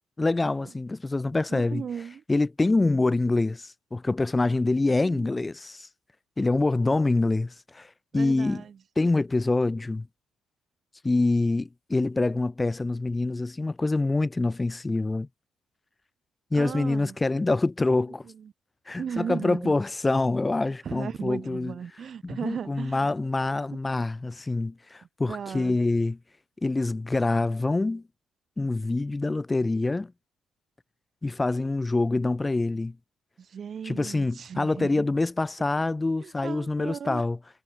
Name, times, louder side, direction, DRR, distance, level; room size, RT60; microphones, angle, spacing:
voice 1, 0.2-1.8 2.3-5.9 6.4-8.6 9.0-10.1 11.0-15.3 16.5-18.2 18.9-21.7 22.2-26.2 26.6-28.0 28.6-30.1 31.2-33.0 33.8-37.4, left 2 dB, 20° left, 1.2 m, -26 dB
voice 2, 1.5-2.2 5.0-5.3 8.1-8.8 16.5-17.2 18.2-18.5 19.0-19.7 20.7-23.1 25.3-25.8 33.4-35.0 36.2-37.2, right 7 dB, 50° right, 3.2 m, -36 dB
cardioid pair, 90°, 0 cm